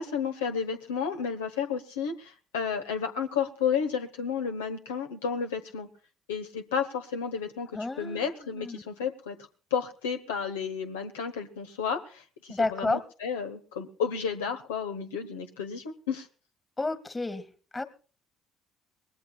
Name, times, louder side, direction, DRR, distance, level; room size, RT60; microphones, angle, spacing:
voice 1, 0.0-5.9 6.3-7.7 8.0-9.4 9.7-16.3, left 6 dB, 85° left, 6 dB, 1.1 m, -32 dB
voice 2, 7.7-8.8 12.5-13.0 16.8-17.4 17.7-17.8, left 2 dB, 20° left, 13 dB, 1.8 m, -31 dB
23.0 x 19.5 x 2.3 m, 0.39 s
hypercardioid pair, 55°, 0 cm